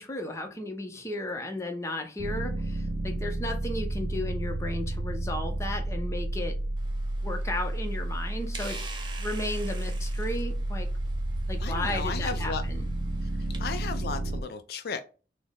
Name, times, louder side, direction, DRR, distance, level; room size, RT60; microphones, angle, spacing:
voice 1, 0.0-6.6 7.2-8.8 9.2-10.9 11.5-12.9, left 1 dB, 15° left, 0.6 m, -34 dB
sound 1, 2.2-14.4, right 1 dB, 80° right, 0.4 m, -31 dB
sound 2, 6.8-13.6, right 4 dB, 25° right, 0.6 m, -47 dB
voice 2, 11.6-12.6 13.2-15.0, left 5 dB, 55° left, 0.3 m, -35 dB
4.1 x 2.0 x 3.4 m
head